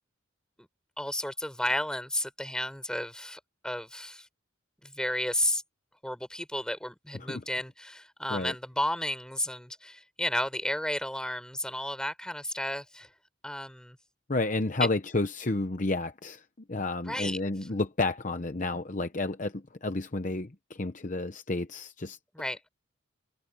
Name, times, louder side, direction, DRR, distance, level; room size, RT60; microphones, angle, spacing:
voice 1, 1.0-4.3 4.8-5.6 6.0-13.1 13.4-14.0 17.0-17.4 22.3-22.6, left 1 dB, 5° left, 4.8 m, -33 dB
voice 2, 14.3-16.4 16.7-22.2, left 2 dB, 40° left, 0.8 m, -31 dB
head